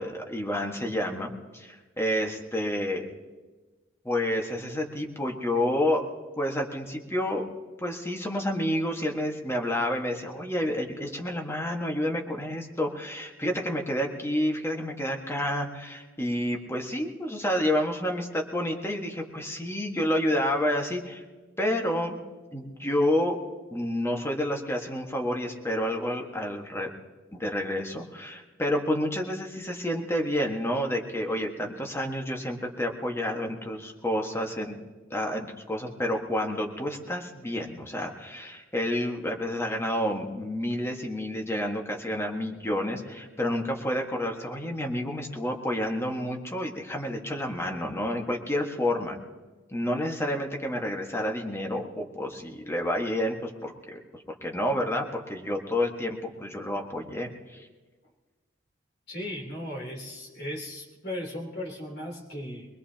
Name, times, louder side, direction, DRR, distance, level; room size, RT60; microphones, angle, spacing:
voice 1, 0.0-3.1 4.0-6.1 6.4-7.5 7.8-21.2 21.6-22.2 22.5-23.4 23.7-26.9 27.3-34.7 35.1-49.2 49.7-57.7, left 1 dB, 15° left, 1 dB, 1.6 m, -29 dB
voice 2, 59.1-62.7, left 1 dB, 60° left, -1 dB, 3.4 m, -36 dB
23.0 x 21.5 x 2.9 m, 1.3 s
head